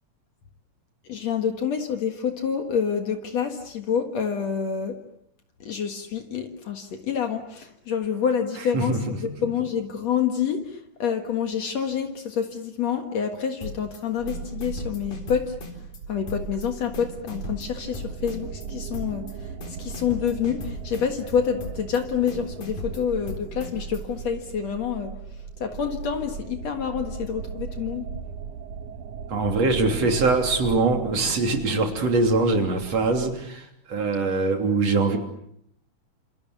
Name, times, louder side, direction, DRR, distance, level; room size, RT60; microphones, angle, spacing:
voice 1, 1.0-5.0 5.6-15.6 16.1-25.2 25.6-28.1, left 7 dB, 65° left, 5 dB, 2.8 m, -27 dB
voice 2, 8.7-9.3 29.3-35.2, right 3 dB, 55° right, 4 dB, 4.1 m, -23 dB
sound 1, 13.6-14.0 14.3-16.0 16.3-16.7 16.9-18.7 18.9-19.3 19.6-21.3 21.6-22.0 22.3-24.0, left 3 dB, 85° left, 5.4 m, -37 dB
sound 2, 14.2-33.3, right 6 dB, 90° right, 2.8 m, -38 dB
29.0 x 27.5 x 7.0 m, 0.73 s
omnidirectional pair, 3.4 m